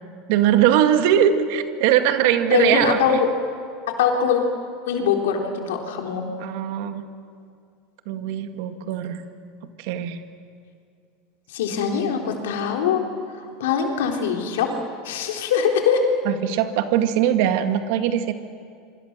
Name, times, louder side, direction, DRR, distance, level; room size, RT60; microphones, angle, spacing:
voice 1, 0.3-3.2 6.4-7.1 8.1-9.2 9.8-10.2 16.3-18.3, right 10 dB, 70° right, 8 dB, 2.1 m, -21 dB
voice 2, 2.5-3.3 4.0-4.4 4.9-6.2 11.5-13.0 13.3-14.7 15.0-16.1, left 6 dB, 85° left, 2 dB, 3.8 m, -22 dB
26.5 x 24.5 x 6.8 m, 2.3 s
supercardioid pair, 100°, 0 cm